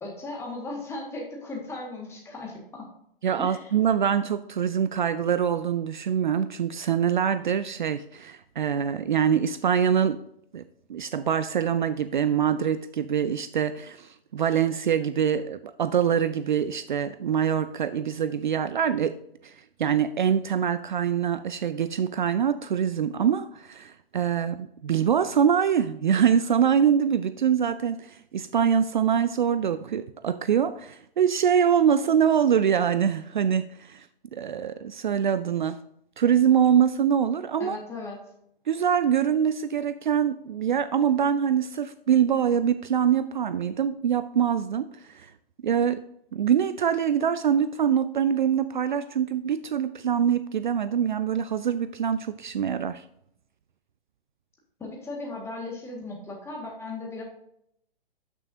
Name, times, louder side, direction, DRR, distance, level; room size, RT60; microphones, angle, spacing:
voice 1, 0.0-2.9 3.4-3.7 37.6-38.2 54.8-57.2, left 2 dB, 10° left, -1 dB, 1.7 m, -37 dB
voice 2, 3.2-10.2 10.5-10.6 10.9-19.2 19.4-19.5 19.8-34.1 34.3-35.8 36.2-37.8 38.7-45.3 45.6-46.0 46.3-53.0, right 8 dB, 55° right, 13 dB, 0.4 m, -24 dB
12.5 x 6.1 x 2.7 m, 0.74 s
figure-of-eight pair, 125°, 29 cm